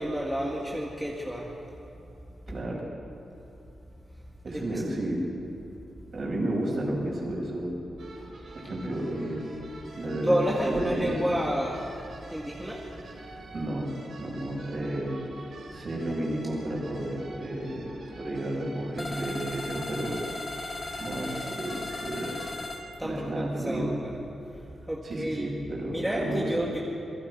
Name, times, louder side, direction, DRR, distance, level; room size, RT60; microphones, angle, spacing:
voice 1, 0.0-1.5 4.5-4.8 10.2-11.9 12.3-12.9 23.0-24.1 24.5-25.5 25.9-26.8, equal, 5° right, -3 dB, 2.0 m, -30 dB
voice 2, 2.5-2.9 4.4-5.2 6.1-7.7 8.6-9.4 10.0-11.4 13.5-13.9 14.2-15.1 15.7-20.2 21.0-22.4 23.0-23.9 25.0-26.5, right 1 dB, 45° right, -2 dB, 6.1 m, -32 dB
sound 1, 8.0-22.5, right 2 dB, 70° right, 5.8 m, -47 dB
sound 2, 19.0-22.8, left 2 dB, 15° left, 1.9 m, -37 dB
27.5 x 22.5 x 4.8 m, 2.8 s
wide cardioid pair, 155°, 0 cm